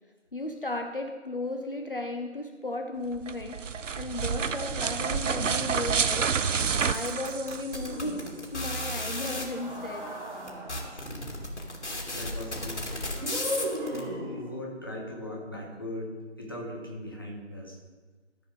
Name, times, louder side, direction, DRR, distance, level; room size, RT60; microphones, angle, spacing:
voice 1, 0.3-6.4 6.8-10.1, left 2 dB, 50° left, 4 dB, 0.7 m, -35 dB
sound 1, 3.1-8.1, right 6 dB, 85° right, 0.6 m, -29 dB
sound 2, 6.6-9.4 10.1-10.2 10.5-14.0, left 1 dB, 70° left, 2.5 m, -34 dB
sound 3, 7.8-8.6 9.4-11.2 13.1-14.7, equal, 40° right, 3.0 m, -36 dB
voice 2, 10.9-11.5 12.1-13.1 13.9-16.1 16.4-17.8, left 1 dB, 20° left, -3 dB, 1.0 m, -39 dB
13.5 x 5.0 x 5.2 m, 1.3 s
figure-of-eight pair, 170°, 36 cm